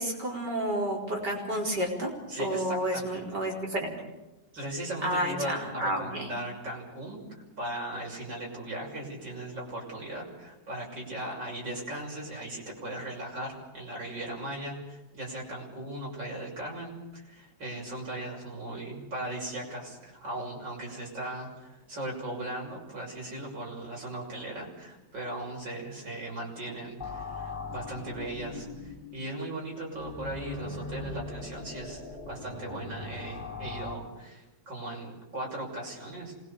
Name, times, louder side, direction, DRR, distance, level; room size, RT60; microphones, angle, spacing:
voice 1, 0.0-2.1 2.4-3.9 5.0-6.3, right 1 dB, 65° right, -1 dB, 5.1 m, -30 dB
voice 2, 2.3-3.2 4.5-7.2 7.6-36.3, right 1 dB, 85° right, -2 dB, 7.2 m, -38 dB
sound 1, 27.0-34.0, left 4 dB, 25° left, 4.9 m, -40 dB
26.0 x 21.0 x 7.0 m, 1.0 s
omnidirectional pair, 2.0 m